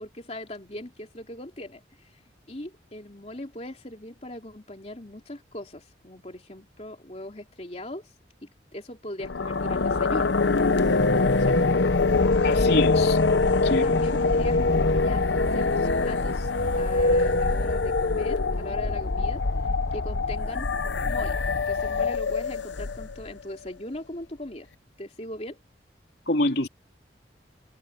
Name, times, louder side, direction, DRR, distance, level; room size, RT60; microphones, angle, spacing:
voice 1, 0.0-2.2 2.5-8.1 8.4-10.3 11.4-11.7 13.6-16.5 16.8-19.4 19.9-20.7 21.0-24.7 25.0-25.6, left 1 dB, 35° left, 3.1 m, -39 dB
sound 1, 9.2-23.3, left 3 dB, 85° left, 1.0 m, -23 dB
voice 2, 12.4-13.2 13.6-13.8 26.3-26.7, left 1 dB, 60° left, 3.5 m, -25 dB
head